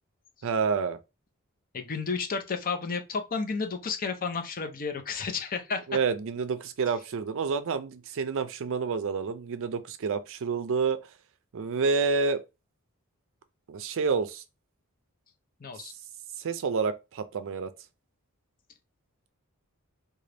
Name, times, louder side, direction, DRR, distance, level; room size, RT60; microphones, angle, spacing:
voice 1, 0.4-1.0 5.9-11.0 11.5-12.4 13.7-14.4 16.4-17.7, right 5 dB, 60° right, 0.4 m, -28 dB
voice 2, 1.7-5.9 15.6-15.9, left 5 dB, 40° left, 0.6 m, -32 dB
3.8 x 2.3 x 3.3 m
head